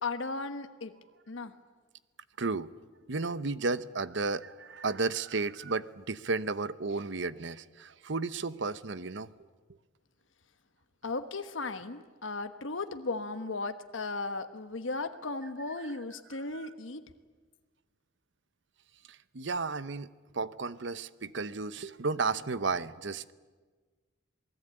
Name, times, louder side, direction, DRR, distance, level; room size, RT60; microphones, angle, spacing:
voice 1, 0.0-1.0 1.3-1.5 11.0-17.0, left 3 dB, 80° left, 8 dB, 1.2 m, -36 dB
voice 2, 2.4-2.7 3.1-9.3 16.5-16.7 19.1-20.1 20.3-23.3, right 4 dB, 70° right, 15 dB, 0.9 m, -33 dB
27.5 x 20.0 x 9.0 m, 1.4 s
head